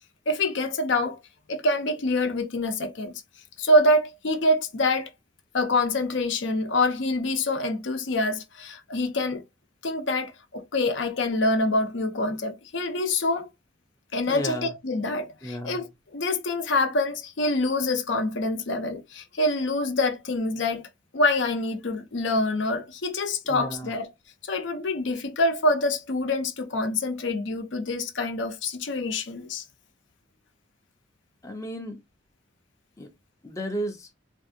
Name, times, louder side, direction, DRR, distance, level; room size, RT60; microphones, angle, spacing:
voice 1, 0.3-1.2 1.5-3.2 3.6-5.1 5.5-9.4 9.8-13.5 14.1-20.9 21.1-24.1 24.4-29.6, left 2 dB, 65° left, 0.6 m, -26 dB
voice 2, 14.3-14.7 15.4-15.8 23.5-23.9 31.4-32.0 33.0-33.1 33.4-34.1, equal, 15° left, 0.5 m, -33 dB
3.3 x 2.6 x 2.6 m
head